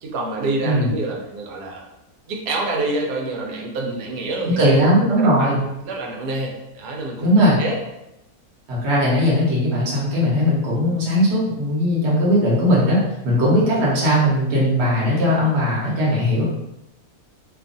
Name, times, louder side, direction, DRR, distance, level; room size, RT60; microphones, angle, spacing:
voice 1, 0.0-1.8 2.3-4.8 5.2-5.5 5.8-7.3 7.6-7.8, right 2 dB, 85° right, 0 dB, 1.2 m, -27 dB
voice 2, 4.5-5.6 7.2-7.6 8.7-16.4, equal, 50° right, -6 dB, 1.0 m, -18 dB
2.8 x 2.3 x 2.5 m, 0.88 s
omnidirectional pair, 1.7 m